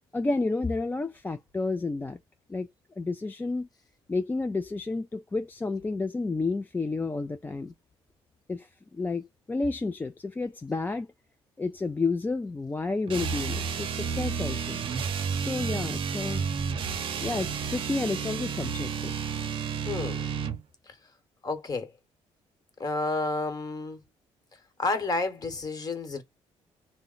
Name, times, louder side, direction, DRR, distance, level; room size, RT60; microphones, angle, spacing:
voice 1, 0.1-2.2 2.5-2.7 3.0-3.7 4.1-7.7 8.5-11.1 11.6-14.8 15.4-16.4 17.2-19.1, left 3 dB, 15° left, 0.3 m, -31 dB
sound 1, 13.1-20.6, right 6 dB, 50° right, 0.7 m, -31 dB
voice 2, 19.8-20.3 20.9-21.0 21.4-21.9 22.8-24.0 24.8-26.2, left 3 dB, 35° left, 1.2 m, -30 dB
2.9 x 2.1 x 3.8 m
cardioid pair, 95°, 11 cm